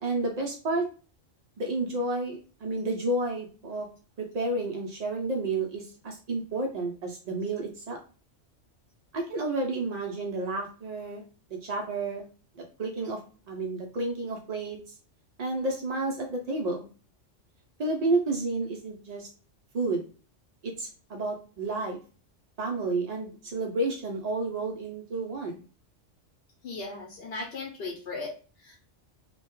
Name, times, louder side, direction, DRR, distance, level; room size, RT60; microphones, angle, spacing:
voice 1, 0.0-0.9 1.6-3.9 4.2-8.0 9.1-11.2 11.6-12.3 12.6-13.2 13.5-14.8 15.4-16.9 17.8-19.3 19.7-20.1 20.6-22.0 22.6-25.6, right 2 dB, 90° right, 1 dB, 0.3 m, -31 dB
voice 2, 26.6-28.7, left 3 dB, 60° left, -2 dB, 0.8 m, -37 dB
2.2 x 2.1 x 2.9 m, 0.37 s
omnidirectional pair, 1.2 m